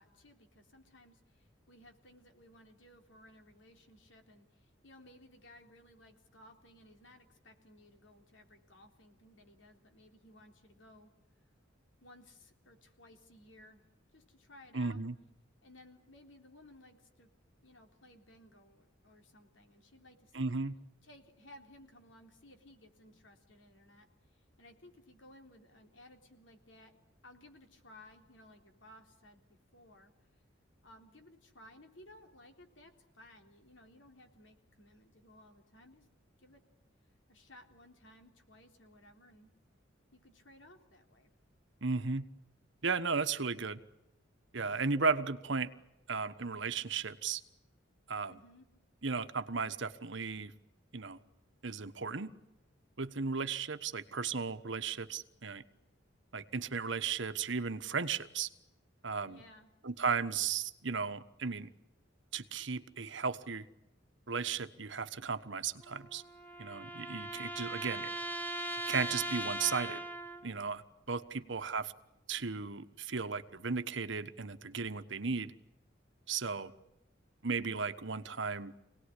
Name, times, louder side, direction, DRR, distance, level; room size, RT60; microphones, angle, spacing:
voice 1, 0.0-11.1 12.0-13.8 14.1-15.0 15.6-17.3 17.6-20.6 21.0-29.5 29.7-30.1 30.8-36.1 36.4-36.6 37.3-39.5 40.1-41.3 48.3-48.7 59.3-59.7 71.3-71.6, left 1 dB, 70° left, 5 dB, 3.6 m, -59 dB
voice 2, 14.7-15.1 20.3-20.7 41.8-42.3 42.8-43.8 44.5-45.7 46.1-47.4 48.1-48.3 49.0-50.5 50.9-51.2 51.6-52.3 53.0-55.6 56.3-58.5 59.0-59.4 59.8-61.7 62.3-63.7 64.3-66.2 66.6-68.1 68.9-70.0 70.4-70.8 71.1-71.9 72.3-75.5 76.3-76.7 77.4-78.7, right 5 dB, 65° right, 11 dB, 1.3 m, -35 dB
sound 1, 65.8-70.6, right 1 dB, 10° left, 1.8 m, -40 dB
26.5 x 18.5 x 10.0 m, 0.92 s
head